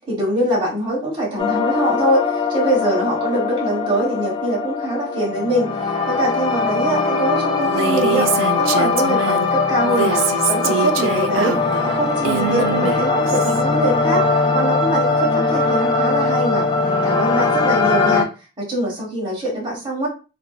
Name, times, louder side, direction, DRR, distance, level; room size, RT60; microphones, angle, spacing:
voice 1, 0.1-11.5 11.8-14.2 14.5-16.7 17.0-18.3 18.6-20.1, right 1 dB, 25° right, -5 dB, 1.2 m, -23 dB
sound 1, 1.4-18.2, left 4 dB, 25° left, 0.3 m, -20 dB
Female speech woman speaking, 7.6-9.5 9.8-13.6, right 6 dB, 85° right, 0.3 m, -24 dB
3.4 x 2.0 x 2.2 m, 0.33 s
head